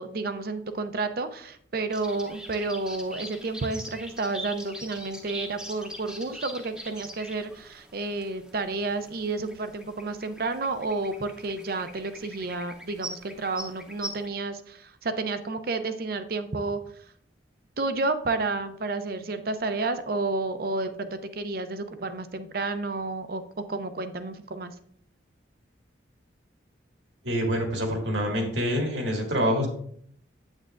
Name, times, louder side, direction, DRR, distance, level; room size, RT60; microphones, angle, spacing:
voice 1, 0.0-16.8 17.8-24.7, right 3 dB, 50° right, 10 dB, 0.6 m, -31 dB
sound 1, 1.9-14.3, equal, 5° right, 0.7 m, -43 dB
voice 2, 27.2-29.7, equal, 80° right, 1 dB, 2.1 m, -26 dB
8.9 x 8.2 x 2.5 m, 0.65 s
head